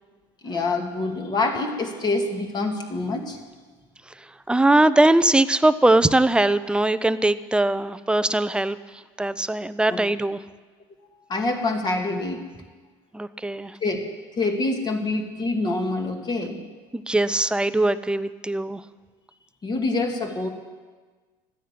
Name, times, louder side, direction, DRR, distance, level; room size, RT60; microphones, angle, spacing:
voice 1, 0.4-3.4 9.9-10.0 11.3-12.4 13.8-16.6 19.6-20.5, left 2 dB, 35° left, 3 dB, 2.6 m, -26 dB
voice 2, 4.5-10.4 13.1-13.8 16.9-18.8, right 2 dB, 5° right, 14 dB, 0.6 m, -21 dB
14.5 x 10.0 x 8.6 m, 1.4 s
supercardioid pair, 90°, 13 cm